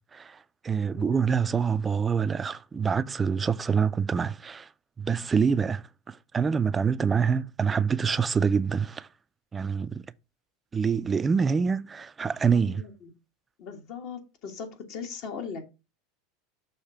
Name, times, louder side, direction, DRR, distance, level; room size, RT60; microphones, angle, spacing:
voice 1, 0.1-4.7 5.0-9.1 9.5-10.0 10.7-12.8, right 6 dB, 25° right, 0.4 m, -26 dB
voice 2, 12.5-13.1 13.6-15.6, left 6 dB, 60° left, 1.5 m, -39 dB
6.5 x 2.7 x 5.5 m
hypercardioid pair, 90°, 0 cm